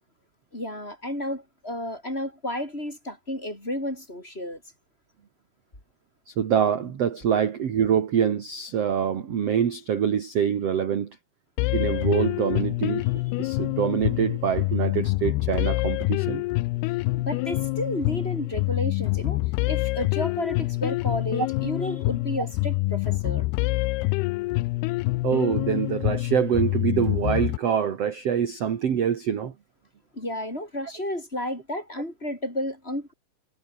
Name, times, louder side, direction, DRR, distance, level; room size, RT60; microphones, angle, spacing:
voice 1, 0.5-4.6 17.2-19.4 19.7-23.5 30.1-33.1, left 1 dB, 10° left, 7.7 m, -32 dB
voice 2, 6.3-11.2 11.7-16.4 25.2-29.5, right 8 dB, 50° right, 2.1 m, -25 dB
sound 1, 11.6-27.6, left 21 dB, 85° left, 2.3 m, -26 dB
omnidirectional pair, 5.2 m